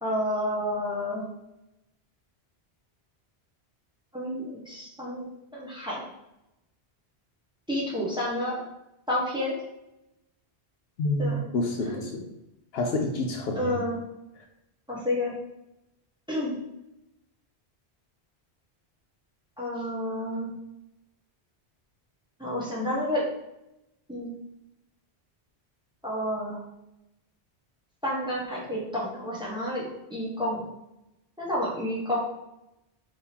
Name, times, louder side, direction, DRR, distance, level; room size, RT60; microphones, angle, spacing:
voice 1, 0.0-1.2 4.1-5.3 5.5-6.0 7.7-8.6 9.1-9.5 11.2-11.4 11.8-11.9 13.5-14.0 14.9-15.3 16.3-16.5 19.6-20.5 22.4-23.2 24.1-24.3 26.0-26.6 28.0-29.8 30.1-30.6 31.4-32.2, left 1 dB, 5° right, -6 dB, 1.0 m, -30 dB
voice 2, 11.0-12.3 12.7-13.8, left 2 dB, 70° left, 3 dB, 0.8 m, -28 dB
3.7 x 2.9 x 4.3 m, 0.90 s
omnidirectional pair, 1.1 m